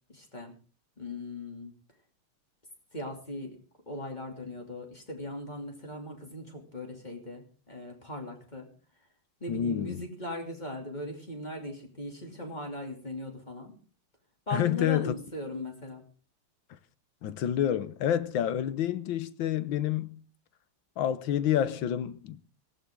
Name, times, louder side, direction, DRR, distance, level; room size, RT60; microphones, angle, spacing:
voice 1, 0.1-0.5 1.0-1.7 2.9-3.6 3.9-8.7 9.4-13.7 14.5-16.0, left 1 dB, 20° left, 3.0 m, -39 dB
voice 2, 9.5-10.0 14.5-15.1 17.2-20.2 21.0-22.4, left 10 dB, 70° left, 1.6 m, -28 dB
18.0 x 15.5 x 3.7 m
omnidirectional pair, 2.4 m